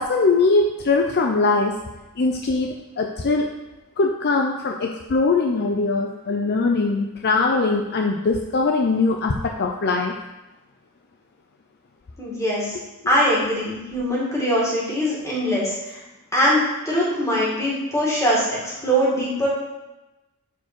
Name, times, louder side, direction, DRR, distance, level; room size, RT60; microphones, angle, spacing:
voice 1, 0.0-1.8 2.2-3.5 4.0-10.1, left 3 dB, 45° left, 2 dB, 0.5 m, -21 dB
voice 2, 12.2-12.8 13.1-16.0 16.3-19.5, equal, 15° left, -5 dB, 2.3 m, -22 dB
7.0 x 4.7 x 6.1 m, 1.0 s
head